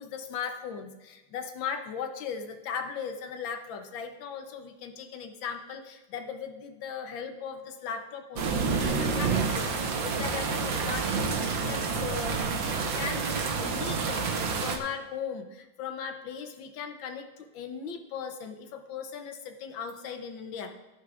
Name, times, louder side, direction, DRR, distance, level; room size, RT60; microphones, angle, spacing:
voice 1, 0.0-20.7, left 6 dB, 85° left, 6 dB, 1.7 m, -38 dB
sound 1, 8.4-14.8, right 5 dB, 80° right, 1.8 m, -29 dB
17.0 x 9.7 x 2.5 m, 1.1 s
omnidirectional pair, 2.0 m